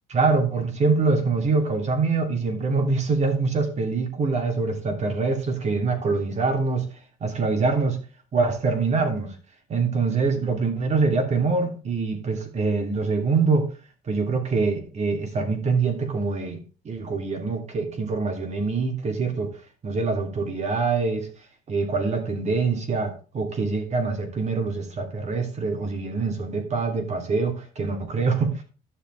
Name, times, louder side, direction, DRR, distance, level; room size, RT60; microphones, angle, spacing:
voice 1, 0.1-6.9 7.2-8.0 8.3-9.3 9.7-13.7 14.1-16.6 16.8-21.3 21.7-28.6, right 4 dB, 40° right, 4 dB, 3.0 m, -24 dB
11.5 x 6.9 x 3.4 m, 0.35 s
cardioid pair, 110°, 17 cm